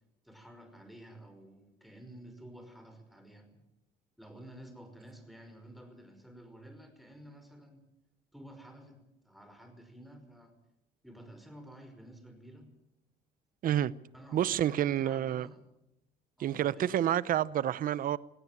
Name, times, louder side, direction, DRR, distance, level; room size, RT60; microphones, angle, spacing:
voice 1, 0.2-3.6 4.2-7.8 8.3-10.5 11.0-12.7 14.1-15.6 16.4-17.0, right 1 dB, ahead, 5.4 m, -51 dB
voice 2, 14.3-15.5 16.4-18.2, right 11 dB, 55° right, 0.8 m, -29 dB
18.0 x 17.0 x 9.3 m
cardioid pair, 110°, 17 cm